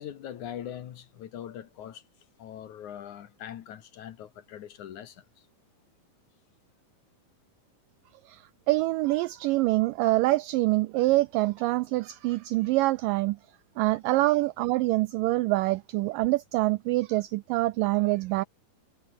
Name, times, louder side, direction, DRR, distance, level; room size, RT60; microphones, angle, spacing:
voice 1, 0.0-2.0 2.4-5.3 13.9-14.3, left 10 dB, 60° left, 2.4 m, -42 dB
voice 2, 8.3-13.4 13.8-18.4, right 19 dB, 90° right, 1.9 m, -25 dB
omnidirectional pair, 4.4 m